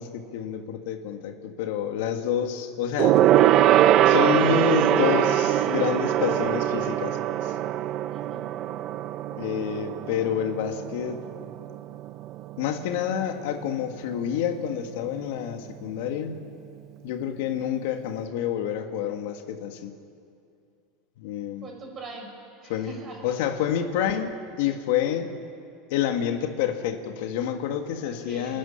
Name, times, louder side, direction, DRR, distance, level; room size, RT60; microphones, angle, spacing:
voice 1, 0.0-3.2 4.0-7.6 9.3-11.3 12.6-16.4 17.0-19.9 21.2-21.7 22.7-23.0 23.2-25.3 25.9-28.6, left 9 dB, 75° left, 6 dB, 1.6 m, -28 dB
Gong, 3.0-12.8 13.1-13.3 13.6-13.7, right 12 dB, 45° right, 0.6 m, -22 dB
voice 2, 8.1-8.5 21.6-22.3 22.6-23.3 28.0-28.6, right 3 dB, 30° right, 1 dB, 5.7 m, -42 dB
27.5 x 10.5 x 9.8 m, 2.5 s
supercardioid pair, 125°, 0 cm